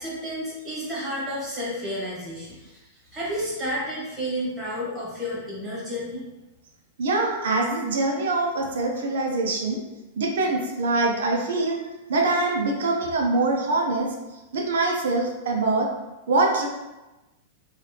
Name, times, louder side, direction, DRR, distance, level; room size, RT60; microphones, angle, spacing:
voice 1, 0.0-2.8 3.1-6.2, equal, 15° right, -7 dB, 1.3 m, -31 dB
voice 2, 7.0-9.8 10.2-11.8 12.1-14.1 14.5-15.9 16.3-16.7, right 2 dB, 85° right, 1 dB, 0.6 m, -24 dB
3.1 x 2.3 x 3.3 m, 1.1 s
supercardioid pair, 155°, 0 cm